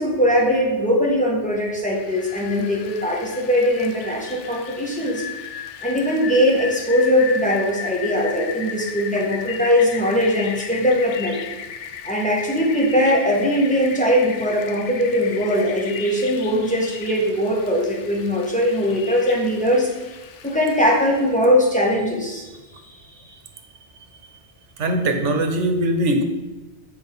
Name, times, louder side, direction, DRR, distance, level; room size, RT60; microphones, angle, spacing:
voice 1, 0.0-5.2 5.8-11.4 12.0-19.9 20.4-22.5 22.9-23.0, equal, 5° left, -3 dB, 1.6 m, -20 dB
Rain, 1.9-21.4, left 7 dB, 90° left, 1.0 m, -36 dB
voice 2, 24.8-26.2, right 1 dB, 85° right, 6 dB, 1.3 m, -21 dB
7.8 x 5.3 x 5.5 m, 1.1 s
omnidirectional pair, 1.2 m